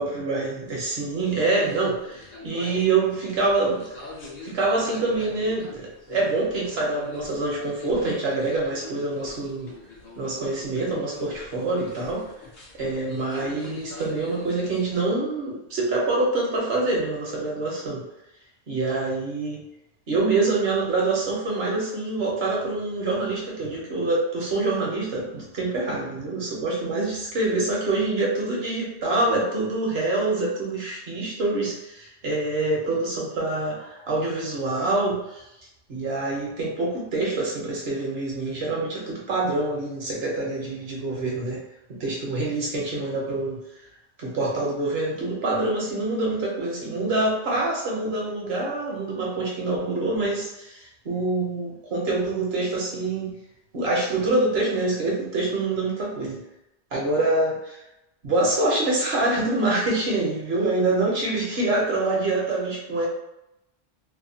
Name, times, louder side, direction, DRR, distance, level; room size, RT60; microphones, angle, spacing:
voice 1, 0.0-4.0 4.4-9.7 10.2-12.3 12.7-18.0 18.7-19.6 20.1-35.5 35.9-41.6 41.9-43.9 44.2-53.3 53.7-56.4 56.9-57.8 58.2-63.1, right 2 dB, 65° right, -3 dB, 1.1 m, -26 dB
sound 1, 0.7-15.1, left 3 dB, 55° left, 0.6 m, -43 dB
2.8 x 2.2 x 2.7 m, 0.87 s
omnidirectional pair, 1.1 m